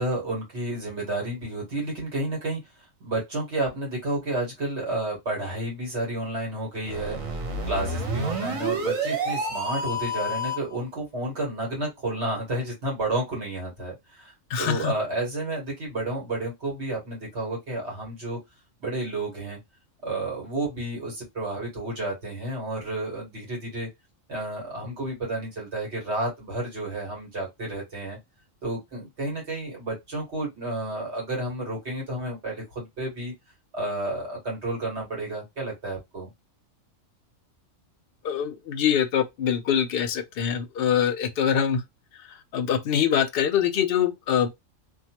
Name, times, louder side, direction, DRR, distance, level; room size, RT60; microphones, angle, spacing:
voice 1, 0.0-2.6 3.0-7.2 7.6-14.3 14.6-18.4 18.8-19.6 20.0-23.9 24.3-28.2 28.6-33.3 33.7-36.3, right 2 dB, 55° right, 1.7 m, -31 dB
sound 1, 6.8-10.8, right 2 dB, 80° right, 1.3 m, -29 dB
voice 2, 14.5-14.9 38.2-41.8 42.5-44.5, left 8 dB, 60° left, 0.7 m, -24 dB
3.0 x 2.3 x 2.9 m
omnidirectional pair, 1.4 m